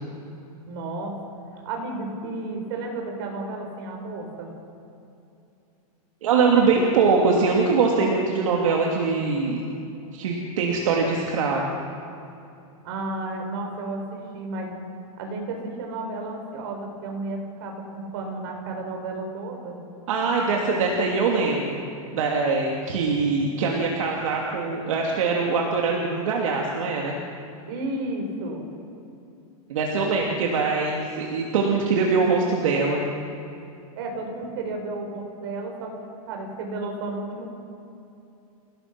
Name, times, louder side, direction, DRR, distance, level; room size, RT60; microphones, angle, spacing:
voice 1, 0.7-1.1 1.5-4.5 12.8-14.7 15.2-19.8 27.7-28.7 34.0-35.9 36.3-37.5, right 2 dB, 40° right, 2 dB, 4.8 m, -32 dB
voice 2, 6.2-9.6 10.1-11.7 20.1-21.8 22.1-27.1 29.7-33.0, right 4 dB, 60° right, -1 dB, 2.7 m, -23 dB
28.5 x 17.5 x 6.1 m, 2.7 s
supercardioid pair, 175°, 19 cm